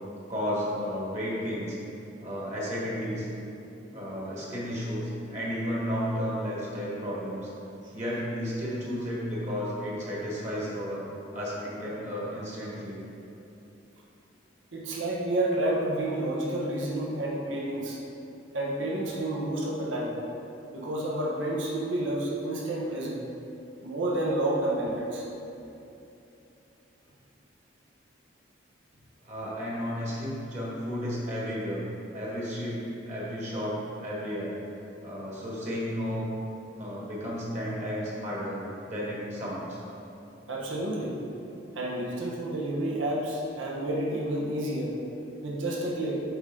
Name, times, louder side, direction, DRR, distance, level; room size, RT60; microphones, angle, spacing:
voice 1, 0.3-1.8 2.2-3.2 3.9-7.5 7.9-11.0 11.3-13.0 29.2-31.8 32.1-34.5 35.0-36.3 36.8-38.6 38.9-39.8, equal, 35° right, -6 dB, 1.6 m, -33 dB
voice 2, 14.7-18.0 18.5-20.2 20.7-23.2 23.8-25.2 40.5-41.2 41.7-45.0 45.4-46.2, right 1 dB, 90° right, -3 dB, 1.2 m, -30 dB
8.0 x 5.3 x 3.8 m, 2.9 s
head